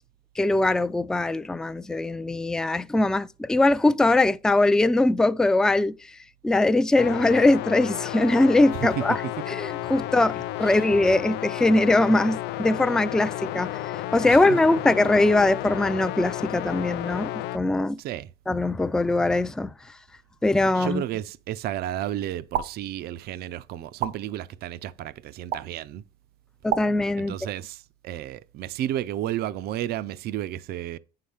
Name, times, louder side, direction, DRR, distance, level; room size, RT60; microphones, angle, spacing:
voice 1, 0.4-6.0 6.4-9.2 9.5-13.8 14.1-18.0 18.5-19.7 20.4-21.0 26.6-27.3, left 2 dB, 5° left, 0.3 m, -21 dB
sound 1, 7.0-17.6, left 15 dB, 85° left, 0.4 m, -32 dB
voice 2, 10.6-11.1 14.3-14.6 18.0-18.3 20.7-26.0 27.2-31.0, right 12 dB, 70° right, 0.5 m, -32 dB
sound 2, 22.5-22.7 24.0-24.1 25.5-25.6 26.7-26.8, right 10 dB, 90° right, 1.3 m, -26 dB
9.3 x 5.7 x 3.4 m
cardioid pair, 110°, 17 cm